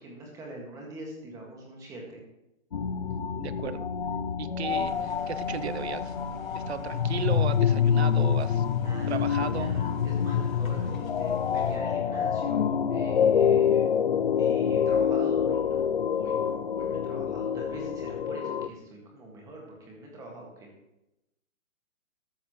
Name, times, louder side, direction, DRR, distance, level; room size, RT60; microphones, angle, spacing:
voice 1, 0.0-2.2 8.4-13.9 14.4-20.7, right 1 dB, 10° right, -1 dB, 1.9 m, -43 dB
sound 1, 2.7-18.7, left 8 dB, 45° left, 0.5 m, -26 dB
voice 2, 3.4-3.9 4.4-6.1 6.5-8.6 9.1-9.8, right 8 dB, 55° right, 14 dB, 0.8 m, -35 dB
sound 2, 4.7-11.8, left 3 dB, 80° left, 2.2 m, -46 dB
14.0 x 13.0 x 3.1 m, 0.89 s
hypercardioid pair, 165°, 40 cm